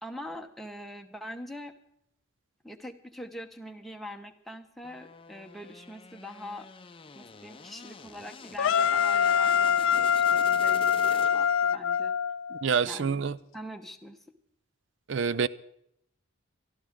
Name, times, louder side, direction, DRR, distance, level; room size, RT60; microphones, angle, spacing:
voice 1, 0.0-1.7 2.6-6.7 7.1-12.1 12.9-13.2 13.5-14.2, left 1 dB, ahead, 0.9 m, -43 dB
sound 1, 4.8-11.7, left 4 dB, 25° left, 0.6 m, -47 dB
sound 2, 8.6-12.7, left 7 dB, 90° left, 0.5 m, -24 dB
voice 2, 12.5-13.4 15.1-15.5, right 6 dB, 65° right, 0.5 m, -27 dB
25.0 x 12.0 x 3.7 m
head